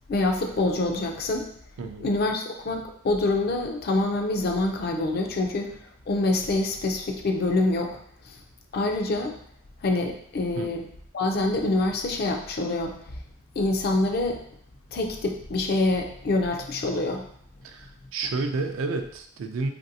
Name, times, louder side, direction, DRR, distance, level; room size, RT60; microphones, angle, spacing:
voice 1, 0.1-1.5 2.0-5.8 6.1-8.0 8.3-8.4 8.7-9.4 9.8-10.9 11.1-13.0 13.6-14.4 14.9-17.2, left 2 dB, 45° left, 3 dB, 0.4 m, -26 dB
voice 2, 1.8-2.1 10.6-10.7 17.6-19.7, right 3 dB, 70° right, 6 dB, 0.3 m, -30 dB
3.1 x 2.6 x 2.7 m, 0.67 s
head